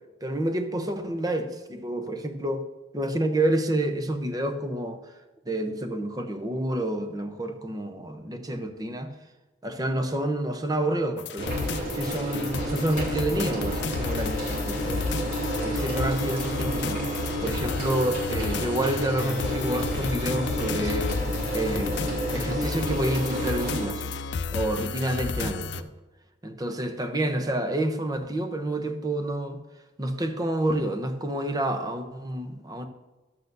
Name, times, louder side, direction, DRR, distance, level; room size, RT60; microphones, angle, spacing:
voice 1, 0.2-2.6 2.9-5.1 5.5-9.1 9.6-11.6 11.9-15.0 15.6-17.0 17.4-24.1 24.5-25.9 26.4-29.6 30.0-32.9, right 1 dB, 20° right, 6 dB, 0.7 m, -29 dB
sound 1, 11.2-25.8, left 4 dB, 75° left, 0.5 m, -32 dB
sound 2, 11.4-23.9, right 1 dB, 55° right, 3.0 m, -31 dB
12.0 x 8.1 x 2.7 m, 1.1 s
head